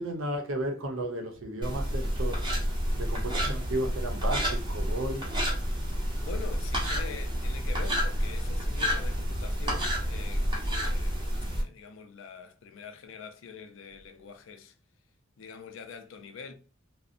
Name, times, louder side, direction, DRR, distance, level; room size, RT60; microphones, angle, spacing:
voice 1, 0.0-2.4 3.0-5.2, right 1 dB, 75° right, 0.7 m, -33 dB
sound 1, 1.6-11.6, equal, 25° right, 0.7 m, -29 dB
voice 2, 6.2-14.7 15.4-16.5, left 6 dB, 70° left, 0.4 m, -44 dB
2.5 x 2.0 x 2.4 m
head